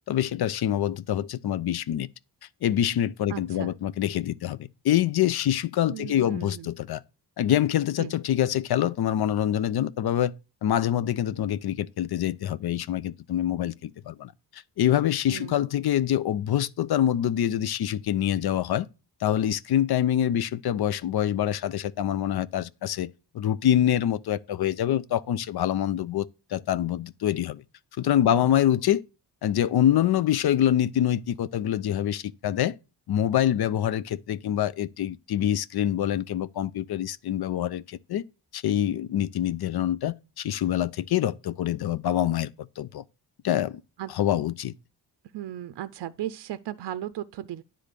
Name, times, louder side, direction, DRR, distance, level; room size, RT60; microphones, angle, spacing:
voice 1, 0.1-2.1 2.6-7.0 7.4-10.3 10.6-18.9 19.2-27.6 28.0-29.0 29.4-32.8 33.1-38.2 38.5-43.0 43.4-43.8 44.1-44.7, left 11 dB, 65° left, 0.5 m, -25 dB
voice 2, 3.3-3.7 5.9-6.7 8.0-8.1 15.3-15.6 28.2-28.5 44.0-44.1 45.3-47.6, right 12 dB, 75° right, 0.5 m, -36 dB
10.0 x 3.8 x 6.7 m
wide cardioid pair, 160°, 41 cm